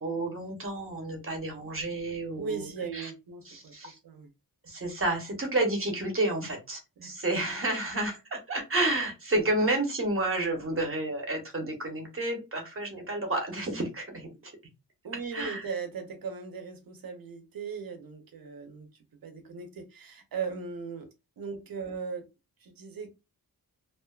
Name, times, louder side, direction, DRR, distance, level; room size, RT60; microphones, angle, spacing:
voice 1, 0.0-3.1 3.4-4.0 4.6-14.5 15.3-15.7, right 2 dB, 35° right, 0.9 m, -30 dB
voice 2, 2.3-3.7 4.0-4.3 7.0-7.1 15.0-18.9 19.2-21.1 21.4-22.2 22.6-23.1, right 5 dB, 65° right, 0.7 m, -38 dB
2.5 x 2.3 x 2.3 m
wide cardioid pair, 115°, 37 cm